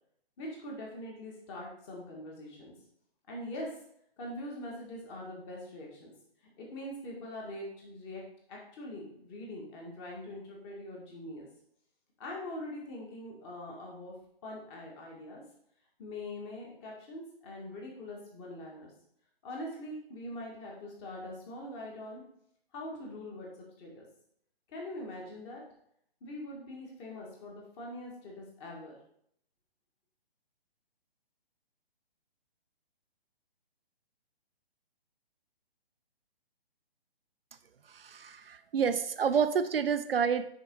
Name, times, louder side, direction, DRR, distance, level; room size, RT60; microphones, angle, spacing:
voice 1, 0.4-2.7 3.3-3.8 4.2-6.1 6.4-8.2 8.5-11.5 12.2-14.1 14.4-15.4 16.0-18.9 19.4-22.2 22.7-23.5 23.8-24.1 24.7-25.6 26.2-29.0, left 1 dB, 25° left, -2 dB, 1.8 m, -43 dB
voice 2, 37.9-40.5, right 7 dB, 70° right, 11 dB, 0.5 m, -29 dB
6.4 x 4.5 x 4.6 m, 0.71 s
figure-of-eight pair, 135°, 31 cm